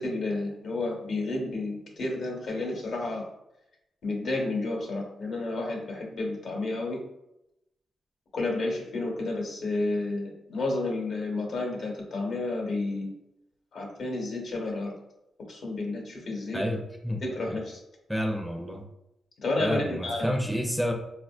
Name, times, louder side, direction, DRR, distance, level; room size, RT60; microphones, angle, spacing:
voice 1, 0.0-3.2 4.0-7.0 8.3-13.1 13.7-14.9 15.5-16.7 17.2-17.8 19.4-20.3, left 2 dB, 70° left, -1 dB, 0.9 m, -31 dB
voice 2, 16.5-17.2 18.1-18.8 19.6-20.9, equal, ahead, 2 dB, 0.5 m, -29 dB
3.9 x 2.4 x 2.3 m, 0.85 s
cardioid pair, 75°, 0 cm